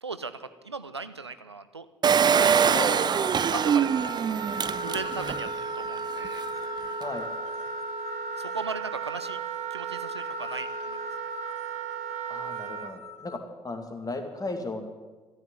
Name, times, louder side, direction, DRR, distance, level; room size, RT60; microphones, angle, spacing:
voice 1, 0.0-1.9 2.4-2.8 3.5-4.2 4.8-6.4 8.4-9.4 9.7-11.1, right 4 dB, 90° right, 12 dB, 0.5 m, -37 dB
Engine, 2.0-5.5 6.0-6.1 6.3-6.4, right 7 dB, 30° right, 0.5 m, -24 dB
Wind instrument woodwind instrument, 2.2-12.9, right 5 dB, 55° right, 1.2 m, -34 dB
voice 2, 2.7-3.3 7.0-7.3 12.3-13.4 13.6-14.9, left 2 dB, 25° left, 5 dB, 2.4 m, -35 dB
sound 1, 3.8-13.4, left 8 dB, 55° left, 1.5 m, -47 dB
14.0 x 9.8 x 9.3 m, 1.3 s
figure-of-eight pair, 45°, 14 cm